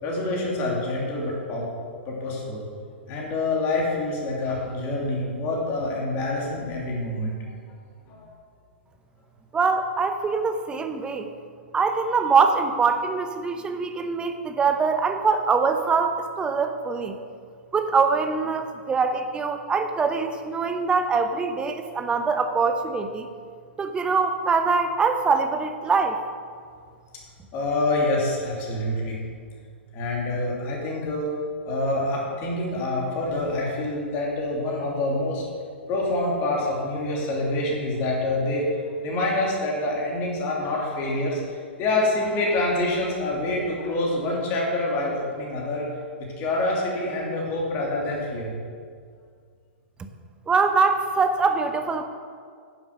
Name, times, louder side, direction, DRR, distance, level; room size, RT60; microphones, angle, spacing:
voice 1, 0.0-1.7 2.0-2.7 3.1-7.3 8.1-8.3 27.5-29.2 29.9-31.3 31.6-35.4 35.9-45.9 46.4-48.5, left 2 dB, 35° left, -3 dB, 2.9 m, -26 dB
voice 2, 9.5-11.3 11.7-17.2 17.7-23.3 23.8-26.2 50.0-50.1 50.5-52.0, right 4 dB, 15° right, 7 dB, 0.8 m, -23 dB
10.5 x 7.5 x 6.0 m, 2.1 s
figure-of-eight pair, 110°, 7 cm